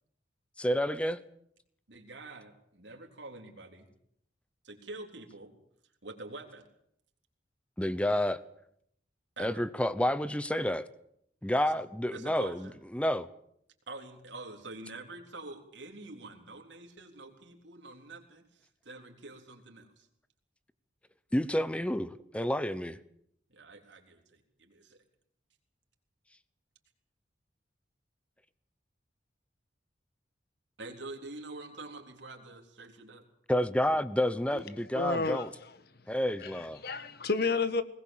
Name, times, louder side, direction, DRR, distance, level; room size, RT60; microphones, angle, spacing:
voice 1, 0.6-1.2 7.8-8.4 9.4-10.9 11.4-13.3 21.3-23.0 33.5-35.5 36.1-36.8, left 1 dB, 5° left, 15 dB, 0.8 m, -29 dB
voice 2, 1.9-3.9 4.6-5.5 6.0-6.7 9.4-9.6 11.6-11.7 12.1-12.8 13.9-20.1 23.5-25.0 30.8-33.2 33.9-34.1, right 2 dB, 75° right, 2 dB, 3.8 m, -46 dB
voice 3, 34.9-35.5 36.4-37.8, left 4 dB, 55° left, 13 dB, 1.4 m, -31 dB
21.0 x 19.0 x 7.4 m, 0.72 s
head